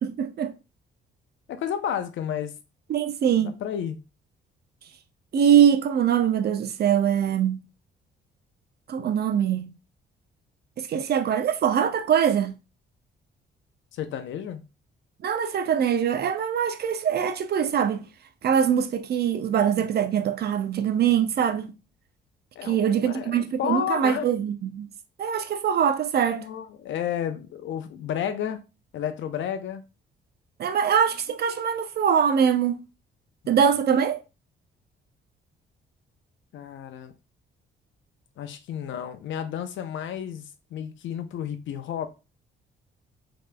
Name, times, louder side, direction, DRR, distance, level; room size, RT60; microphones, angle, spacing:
voice 1, 0.0-0.5 2.9-3.6 5.3-7.6 8.9-9.7 10.8-12.6 15.2-18.0 18.4-21.7 22.6-24.9 25.2-26.4 30.6-32.8 33.5-34.2, right 8 dB, 55° right, 0.5 m, -23 dB
voice 2, 1.5-2.5 3.3-4.0 13.9-14.6 22.6-24.3 26.3-28.6 28.9-29.8 33.4-33.6 36.5-37.1 38.4-40.5 40.7-42.1, left 9 dB, 75° left, 0.6 m, -31 dB
5.0 x 3.0 x 2.2 m
cardioid pair, 90°, 20 cm